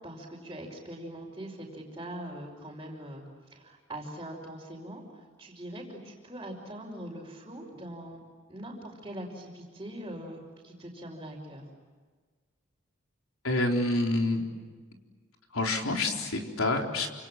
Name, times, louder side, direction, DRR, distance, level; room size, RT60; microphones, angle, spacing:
voice 1, 0.0-8.2 8.5-11.7, right 1 dB, 15° right, -7 dB, 5.2 m, -42 dB
voice 2, 13.4-14.4 15.5-17.1, left 2 dB, 80° left, 2 dB, 4.1 m, -27 dB
29.0 x 27.0 x 7.5 m, 1.5 s
head